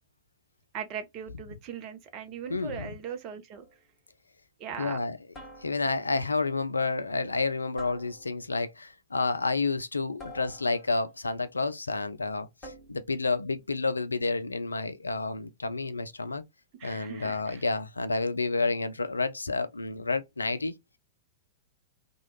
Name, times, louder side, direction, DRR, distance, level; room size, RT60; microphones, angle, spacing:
voice 1, 0.7-3.7 4.6-5.0 16.8-17.6, right 7 dB, 35° right, 0.7 m, -39 dB
voice 2, 2.5-2.9 4.8-5.2 5.6-16.4 16.8-20.7, left 3 dB, 80° left, 0.4 m, -30 dB
sound 1, 3.5-3.9 5.3-6.1 7.8-8.6 10.2-11.1 12.6-13.2, left 1 dB, 20° left, 1.4 m, -48 dB
2.9 x 2.3 x 3.1 m
figure-of-eight pair, 100°, 0 cm